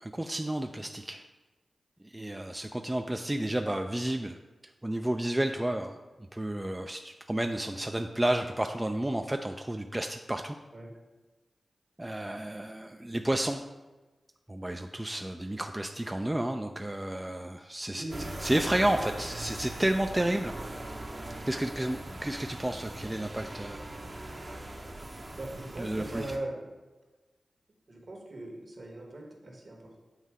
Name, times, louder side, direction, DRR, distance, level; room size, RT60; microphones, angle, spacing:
voice 1, 0.0-1.2 2.0-4.4 4.8-6.0 6.3-10.6 12.0-13.6 14.5-18.0 18.4-20.6 21.5-23.9 25.8-26.2, right 1 dB, 20° right, 4 dB, 0.3 m, -31 dB
voice 2, 17.9-18.3 25.3-26.7 27.9-30.0, right 1 dB, 60° right, 0 dB, 1.3 m, -40 dB
sound 1, 18.1-26.4, right 1 dB, 40° right, 0.8 m, -41 dB
7.3 x 2.7 x 4.8 m, 1.2 s
cardioid pair, 40°, 0 cm